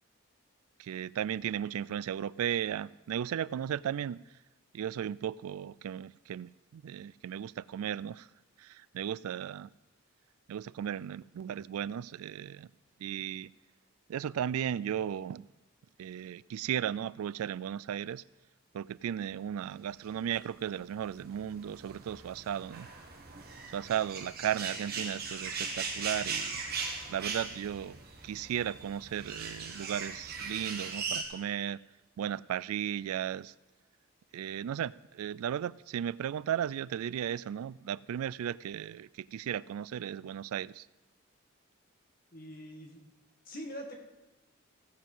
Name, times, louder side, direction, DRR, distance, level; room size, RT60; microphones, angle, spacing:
voice 1, 0.8-4.2 4.7-8.3 8.6-9.7 10.5-12.7 13.0-13.5 14.1-15.5 16.0-18.2 18.7-22.9 23.7-26.6 27.1-28.0 28.2-31.8 32.2-33.5 34.3-40.9, right 9 dB, 80° right, 0.3 m, -35 dB
sound 1, 20.1-31.2, right 4 dB, 45° right, 1.6 m, -39 dB
voice 2, 42.3-43.0 43.5-44.0, equal, 40° left, 1.9 m, -43 dB
16.0 x 7.4 x 5.5 m
head